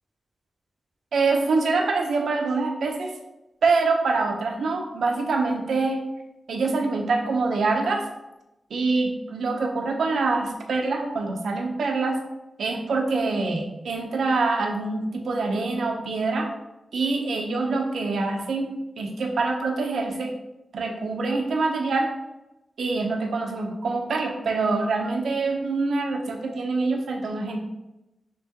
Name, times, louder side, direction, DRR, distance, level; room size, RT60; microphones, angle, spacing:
voice 1, 1.1-3.1 3.6-6.0 6.5-8.0 8.7-12.2 12.6-16.5 16.9-20.3 20.7-22.1 22.8-27.6, right 3 dB, 90° right, 3 dB, 0.7 m, -25 dB
6.0 x 3.0 x 2.8 m, 0.95 s
wide cardioid pair, 150°, 0 cm